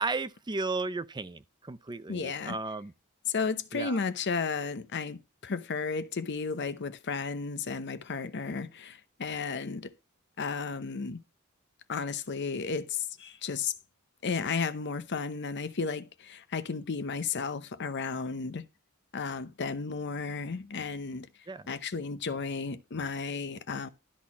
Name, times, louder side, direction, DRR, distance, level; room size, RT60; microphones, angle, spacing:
voice 1, 0.0-2.9 3.7-4.0 21.5-21.7, right 3 dB, 20° right, 0.5 m, -34 dB
voice 2, 2.1-2.6 3.3-9.9 10.4-11.2 11.9-13.7 14.2-18.6 19.1-21.3 21.7-23.9, left 5 dB, 55° left, 0.7 m, -33 dB
12.5 x 4.2 x 5.9 m
head